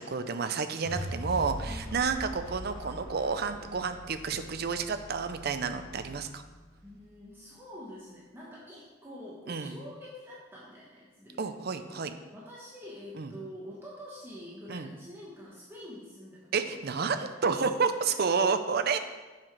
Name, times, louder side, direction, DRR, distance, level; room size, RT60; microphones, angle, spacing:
voice 1, 0.1-6.4 9.5-9.8 11.4-12.1 13.1-13.3 14.7-14.9 16.5-19.0, right 5 dB, 45° right, 9 dB, 0.5 m, -30 dB
sound 1, 0.8-7.0, equal, 70° left, 1.2 m, -42 dB
voice 2, 1.6-2.0 6.8-11.5 11.8-11.9 12.3-16.5 17.1-17.3 18.1-18.2, equal, 10° right, -6 dB, 1.1 m, -46 dB
7.5 x 5.8 x 4.6 m, 1.3 s
head